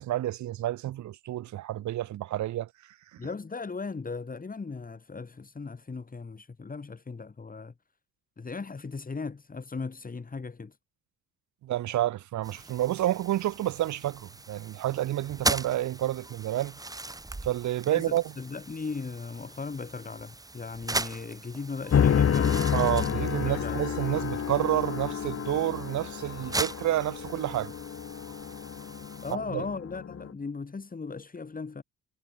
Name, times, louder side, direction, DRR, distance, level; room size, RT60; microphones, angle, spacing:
voice 1, 0.0-2.7 11.6-16.8 17.4-18.3 22.7-27.7 29.5-29.7, right 13 dB, 70° right, 1.0 m, -29 dB
voice 2, 3.2-7.7 8.4-10.8 17.9-22.7 23.3-23.9 29.2-31.8, left 4 dB, 30° left, 4.3 m, -37 dB
sound 1, 12.4-29.3, right 2 dB, 10° right, 1.2 m, -39 dB
sound 2, 21.9-30.3, left 8 dB, 50° left, 3.4 m, -29 dB
cardioid pair, 90°, 30 cm